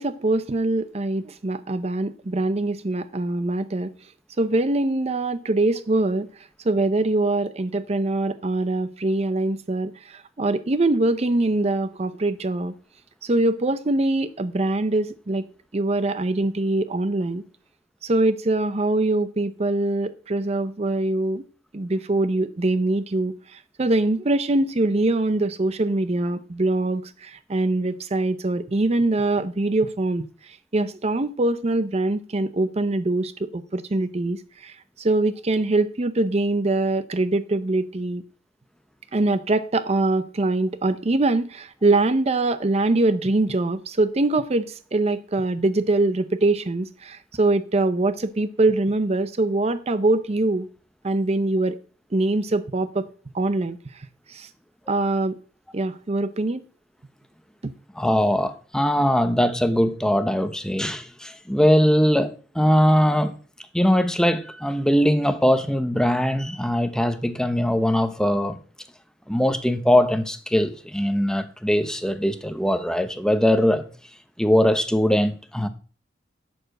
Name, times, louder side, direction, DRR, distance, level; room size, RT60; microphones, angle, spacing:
voice 1, 0.0-3.9 4.4-6.3 6.6-12.7 13.2-15.4 15.7-17.4 18.0-21.4 21.7-30.3 30.7-38.2 39.1-50.7 51.0-51.8 52.1-53.0 53.3-53.8 54.3-54.5 54.9-55.4 55.7-56.6 57.6-57.7, right 2 dB, 35° right, 0.6 m, -23 dB
voice 2, 58.0-63.3 63.7-68.5 69.3-73.8 74.4-75.7, equal, 5° left, 0.8 m, -21 dB
11.5 x 4.8 x 7.6 m
head